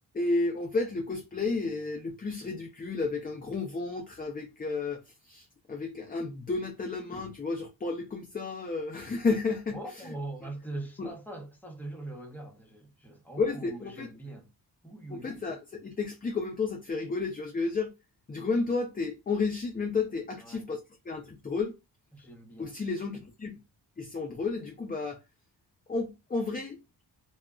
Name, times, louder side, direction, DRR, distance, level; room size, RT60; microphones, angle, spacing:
voice 1, 0.1-10.1 11.0-11.1 13.4-14.1 15.1-17.9 18.3-20.8 21.0-21.7 22.6-23.5 24.0-25.2 25.9-27.0, left 3 dB, 20° left, 0.4 m, -32 dB
voice 2, 9.7-14.5 14.8-15.5 20.4-20.6 22.1-22.8, right 2 dB, 5° left, 0.9 m, -42 dB
2.2 x 2.1 x 3.6 m
wide cardioid pair, 105°, 42 cm